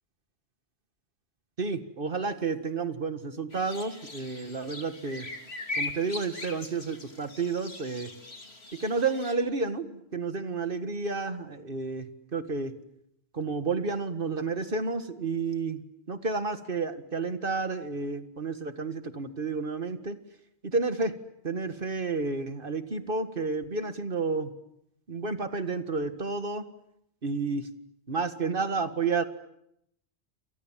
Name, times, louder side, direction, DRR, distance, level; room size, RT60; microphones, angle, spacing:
voice 1, 1.6-5.3 5.8-8.1 8.7-12.7 13.3-15.8 16.1-20.2 20.6-21.2 21.4-24.5 25.1-26.6 27.2-27.7 28.1-29.2, right 4 dB, 50° right, 9 dB, 2.0 m, -31 dB
sound 1, 3.5-9.3, left 2 dB, 65° left, 3.2 m, -40 dB
28.5 x 27.5 x 7.5 m, 0.78 s
omnidirectional pair, 1.1 m